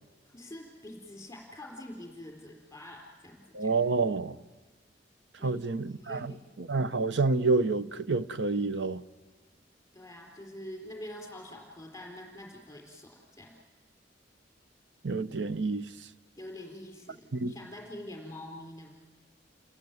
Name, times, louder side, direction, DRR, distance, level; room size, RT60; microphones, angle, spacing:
voice 1, 0.3-3.7 5.4-5.6 6.0-6.4 9.9-13.5 16.4-18.9, left 1 dB, 15° left, 4.6 m, -45 dB
voice 2, 3.5-4.4 5.4-6.3 6.6-9.0 15.0-15.9 17.3-17.5, right 3 dB, 85° right, 0.9 m, -28 dB
29.0 x 22.0 x 9.4 m
head